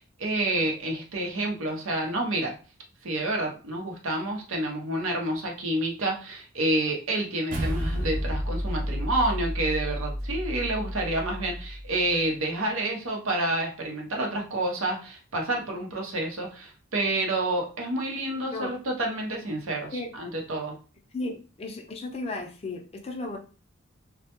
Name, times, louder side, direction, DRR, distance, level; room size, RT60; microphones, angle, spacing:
voice 1, 0.0-2.5 3.0-20.8, right 1 dB, 80° right, 1 dB, 0.7 m, -29 dB
sound 1, 7.5-12.1, equal, 40° right, 0.5 m, -31 dB
voice 2, 21.1-23.4, left 2 dB, 30° left, 2 dB, 0.4 m, -34 dB
2.1 x 2.1 x 2.9 m, 0.35 s
head